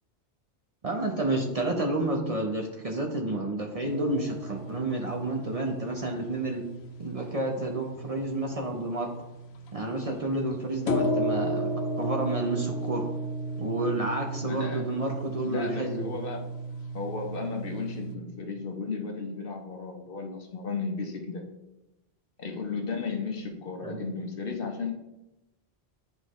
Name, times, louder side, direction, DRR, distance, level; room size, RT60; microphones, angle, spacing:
voice 1, 0.8-6.6 7.0-9.1 9.7-13.1 13.6-16.1 23.8-24.0, right 2 dB, 40° right, 2 dB, 0.7 m, -30 dB
sound 1, 3.8-18.2, right 1 dB, 80° left, 0.9 m, -35 dB
voice 2, 14.4-14.9 15.4-16.4 16.9-21.4 22.4-24.9, left 4 dB, 60° left, 2 dB, 1.1 m, -34 dB
9.9 x 3.6 x 3.1 m, 0.97 s
omnidirectional pair, 1.1 m